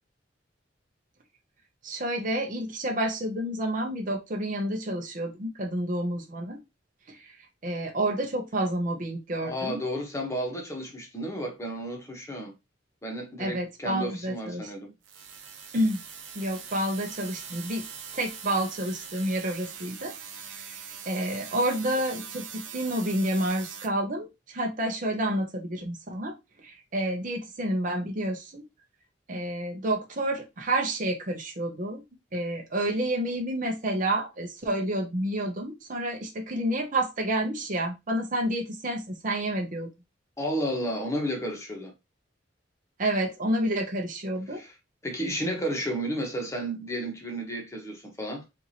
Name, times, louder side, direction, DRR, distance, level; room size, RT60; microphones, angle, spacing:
voice 1, 1.8-6.6 7.1-7.3 7.6-9.8 13.4-14.7 15.7-16.0 16.3-17.8 18.1-20.1 20.5-20.8 21.1-26.3 26.6-28.6 29.3-32.0 32.3-39.9 43.0-44.6, right 1 dB, 45° right, 0.8 m, -29 dB
voice 2, 9.4-12.5 13.0-14.9 40.4-41.9 44.5-44.7 45.0-48.4, equal, 15° left, 1.1 m, -32 dB
sound 1, 15.0-23.9, right 7 dB, 80° right, 0.8 m, -42 dB
4.5 x 2.6 x 2.8 m
head